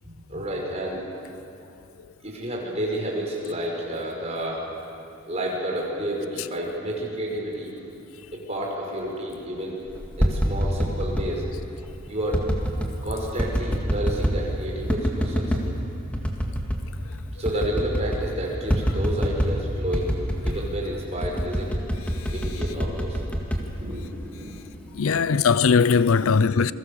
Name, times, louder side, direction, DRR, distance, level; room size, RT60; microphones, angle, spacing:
voice 1, 0.0-1.1 2.2-4.6 5.3-7.7 8.3-9.8 10.2-11.5 12.1-12.4 13.0-15.6 17.4-20.1 20.4-21.8 22.3-23.2 23.6-24.6 25.1-25.4 26.2-26.4, right 1 dB, 30° right, 5.6 m, -30 dB
sound 1, 10.0-11.3 12.3-12.9 13.4-14.4 14.9-15.7 16.1-16.9 17.1-17.2 17.5-18.3 18.7-19.6 19.9-20.7 21.2-24.3 24.7-25.1, equal, 5° left, 2.0 m, -25 dB
voice 2, 24.9-26.7, left 5 dB, 75° left, 0.5 m, -20 dB
28.0 x 22.5 x 7.0 m
head